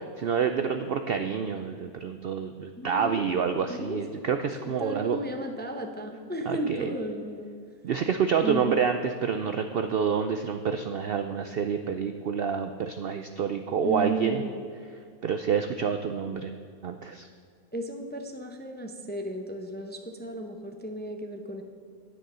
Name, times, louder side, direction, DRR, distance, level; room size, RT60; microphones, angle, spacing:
voice 1, 0.2-5.2 6.5-6.9 7.8-14.4 15.2-16.5 16.8-17.3, right 6 dB, 85° right, 7 dB, 0.5 m, -28 dB
voice 2, 2.8-3.2 3.7-4.2 4.6-7.5 8.4-8.8 13.8-14.6 17.7-21.6, right 1 dB, 15° left, 4 dB, 0.4 m, -34 dB
10.0 x 9.2 x 5.5 m, 2.2 s
omnidirectional pair, 1.6 m